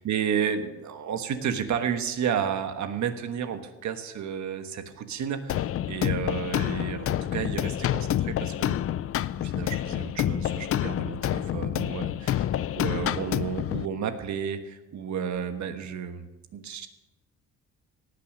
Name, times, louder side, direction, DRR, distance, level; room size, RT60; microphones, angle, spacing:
voice 1, 0.0-8.8 9.4-12.4 12.7-16.3 16.5-16.9, right 8 dB, 60° right, 8 dB, 1.3 m, -32 dB
sound 1, 5.5-13.9, left 11 dB, 45° left, 0.4 m, -28 dB
18.0 x 6.1 x 6.5 m, 1.1 s
cardioid pair, 120°, 32 cm